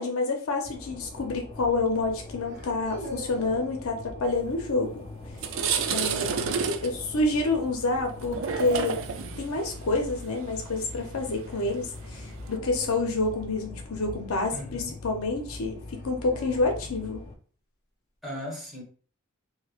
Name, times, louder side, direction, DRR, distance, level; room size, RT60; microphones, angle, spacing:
voice 1, 0.0-5.0 5.9-6.4 6.8-8.9 9.4-15.8 16.0-17.2, left 2 dB, 75° left, 2 dB, 0.6 m, -28 dB
sound 1, 0.6-17.3, left 2 dB, 25° left, 0.5 m, -42 dB
sound 2, 0.6-0.9 2.4-3.7 5.8-6.8 9.2-9.6 12.4-14.8 15.8-17.1, equal, 45° right, 1.4 m, -44 dB
sound 3, 4.8-4.9 5.2-12.6, right 6 dB, 65° right, 0.4 m, -31 dB
voice 2, 6.1-6.5 14.5-15.0 18.2-18.8, left 1 dB, ahead, -4 dB, 1.2 m, -38 dB
3.1 x 2.7 x 2.4 m, 0.42 s
head